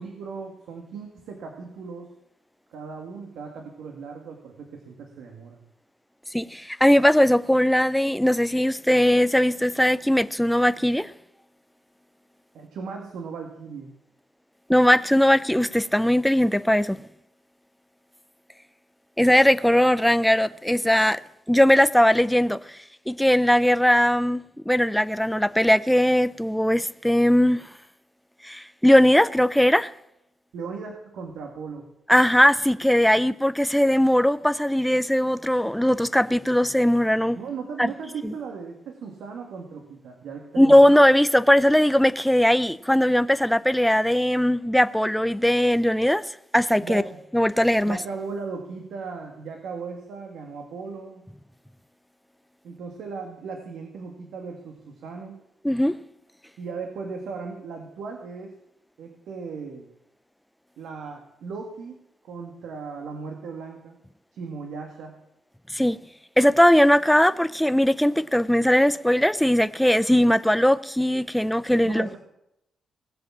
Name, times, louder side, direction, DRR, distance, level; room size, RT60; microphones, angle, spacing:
voice 1, 0.0-2.1 2.7-5.6 12.5-13.9 30.5-31.9 37.3-40.9 46.8-47.2 47.8-51.2 52.6-55.4 56.6-58.5 59.0-59.9 60.8-64.0 64.3-65.2 71.8-72.2, right 5 dB, 80° right, 2.0 m, -37 dB
voice 2, 6.3-11.1 14.7-17.0 19.2-21.2 21.5-22.8 23.1-27.7 28.4-29.9 32.1-37.4 37.8-37.9 38.2-38.3 40.6-46.2 46.5-47.0 47.3-48.0 55.6-56.0 65.7-66.0 66.4-72.2, equal, ahead, 0.4 m, -19 dB
18.5 x 7.6 x 7.4 m
wide cardioid pair, 160°, 0 cm